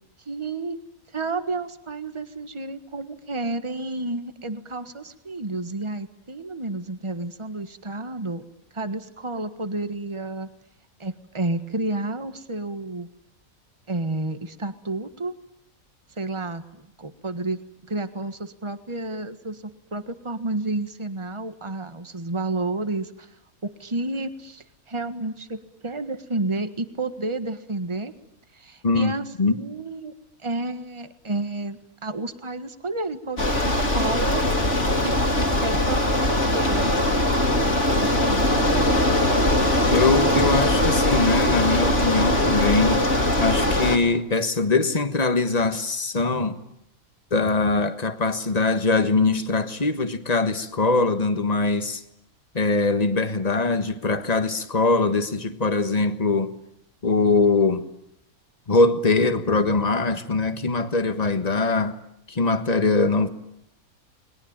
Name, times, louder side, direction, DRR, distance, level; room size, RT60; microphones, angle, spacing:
voice 1, 0.2-0.8 1.1-8.4 8.7-10.5 11.0-13.1 13.9-15.3 16.2-17.6 17.9-23.3 23.6-28.1 28.5-30.1 30.4-34.4 35.0-35.1 35.5-37.0 38.0-38.9, right 2 dB, 20° right, 1.5 m, -31 dB
voice 2, 28.8-29.6 39.9-43.1 43.4-46.6 47.3-52.0 52.5-56.5 57.0-57.8 58.7-62.0 62.3-63.3, left 3 dB, 30° left, 1.6 m, -22 dB
Bicycle, 33.4-44.0, left 1 dB, 55° left, 3.1 m, -21 dB
30.0 x 21.5 x 8.9 m
omnidirectional pair, 1.5 m